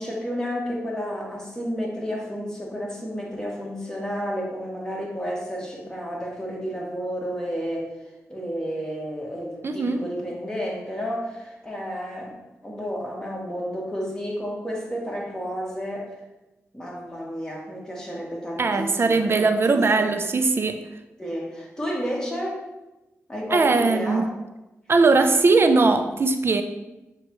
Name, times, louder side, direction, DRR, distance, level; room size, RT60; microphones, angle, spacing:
voice 1, 0.0-7.9 8.3-12.4 12.6-16.1 16.7-20.1 21.2-22.6 23.3-24.3, equal, 10° left, -3 dB, 1.5 m, -31 dB
voice 2, 9.6-10.0 18.6-20.8 23.5-24.2 24.9-26.6, right 3 dB, 45° right, 8 dB, 0.5 m, -20 dB
6.7 x 2.3 x 3.0 m, 1.0 s
supercardioid pair, 40°, 6 cm